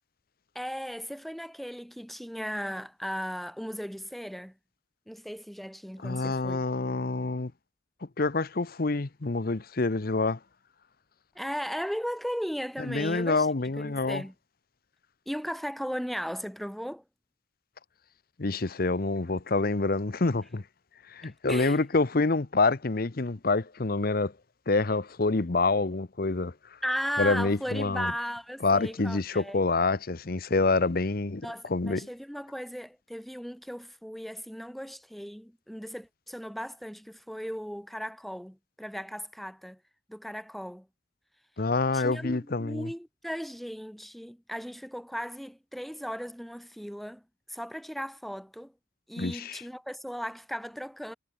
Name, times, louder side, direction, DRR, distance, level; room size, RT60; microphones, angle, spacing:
voice 1, 0.5-4.5 5.1-6.6 11.3-13.5 13.8-14.3 15.3-17.0 21.2-21.8 26.8-29.6 31.4-39.8 40.1-40.9 41.9-47.2 47.5-48.7 49.1-51.2, equal, ahead, 2.9 m, -36 dB
voice 2, 6.0-7.5 8.0-10.4 12.8-14.2 18.4-20.6 21.1-24.3 24.7-26.5 27.2-28.1 28.6-32.0 41.6-42.9 49.2-49.6, left 3 dB, 50° left, 0.8 m, -27 dB
head